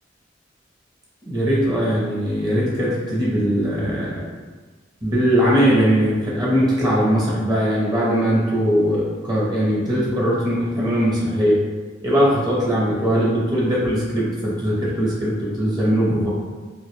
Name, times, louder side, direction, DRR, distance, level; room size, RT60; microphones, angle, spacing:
voice 1, 1.3-4.2 5.0-11.7 12.0-16.3, equal, 20° right, -6 dB, 0.5 m, -20 dB
2.3 x 2.1 x 3.0 m, 1.4 s
head